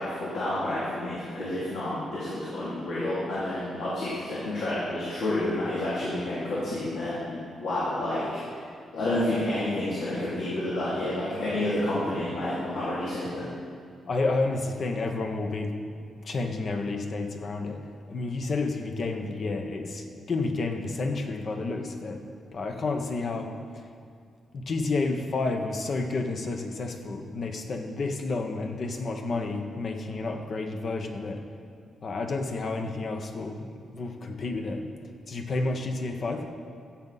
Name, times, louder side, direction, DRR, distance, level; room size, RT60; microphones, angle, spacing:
voice 1, 0.0-8.5 8.9-13.4, left 1 dB, 80° left, -9 dB, 2.7 m, -29 dB
voice 2, 14.1-15.8 16.2-17.8 18.1-22.2 22.5-23.8 24.5-31.4 32.0-34.9 35.3-36.4, left 3 dB, 50° left, 5 dB, 1.0 m, -30 dB
14.5 x 7.5 x 4.1 m, 2.3 s
cardioid pair, 110°, 0 cm